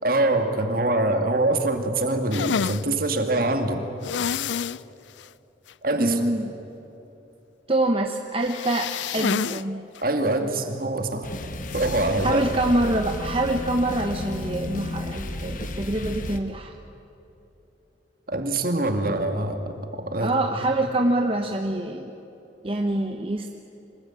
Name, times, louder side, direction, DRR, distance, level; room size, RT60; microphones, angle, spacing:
voice 1, 0.0-3.8 5.8-6.2 10.0-11.3 11.7-12.4 18.3-20.3, right 2 dB, 50° right, 6 dB, 2.1 m, -24 dB
sound 1, 2.3-2.8 4.0-4.8 5.2-5.3 5.7-5.8 8.4-9.6 9.9-10.0 11.7-12.0, left 7 dB, 75° left, 0.4 m, -28 dB
voice 2, 6.0-6.4 7.7-9.8 12.2-16.7 20.2-22.1 22.6-23.5, right 1 dB, 30° right, 3 dB, 1.0 m, -25 dB
sound 2, 11.2-16.4, left 1 dB, 45° left, 1.4 m, -33 dB
25.0 x 20.0 x 9.0 m, 3.0 s
head